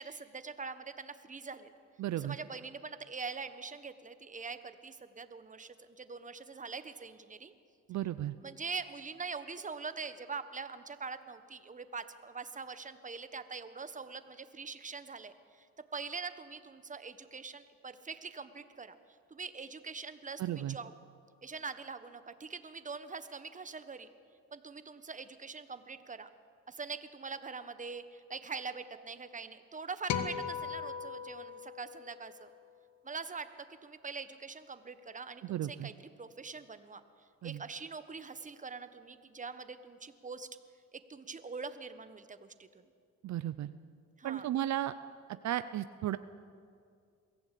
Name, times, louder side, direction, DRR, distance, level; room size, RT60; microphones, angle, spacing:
voice 1, 0.0-1.7 2.1-7.5 8.4-15.7 15.9-19.0 19.3-20.9 21.4-24.1 24.5-26.3 26.7-32.5 33.0-35.9 36.2-37.0 37.4-40.5 40.9-42.8 44.2-44.5, right 4 dB, 25° right, 11 dB, 1.3 m, -43 dB
voice 2, 2.0-2.4 7.9-8.4 20.4-20.8 35.4-35.9 37.4-37.6 43.2-43.7 44.2-44.9 45.4-46.2, right 12 dB, 65° right, 13 dB, 0.7 m, -34 dB
sound 1, 30.1-32.6, left 7 dB, 70° left, 1.6 m, -38 dB
23.0 x 15.5 x 8.5 m, 2.3 s
cardioid pair, 90°, 30 cm